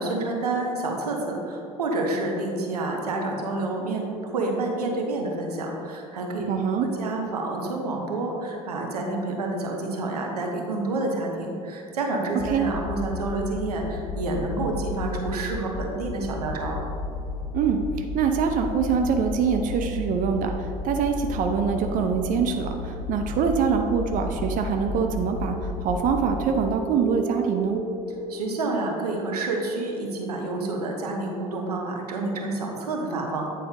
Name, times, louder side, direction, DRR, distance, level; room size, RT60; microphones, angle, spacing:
voice 1, 0.0-16.8 28.3-33.5, right 2 dB, 85° right, 1 dB, 0.9 m, -29 dB
voice 2, 6.5-6.9 12.5-12.6 17.5-17.8 18.1-27.8, right 6 dB, 45° right, 4 dB, 0.6 m, -24 dB
sound 1, 12.4-26.7, left 3 dB, 45° left, 0.6 m, -33 dB
sound 2, 21.3-24.9 25.1-28.4, right 5 dB, 60° right, 1.5 m, -39 dB
9.0 x 4.2 x 3.7 m, 2.7 s
hypercardioid pair, 65°, 19 cm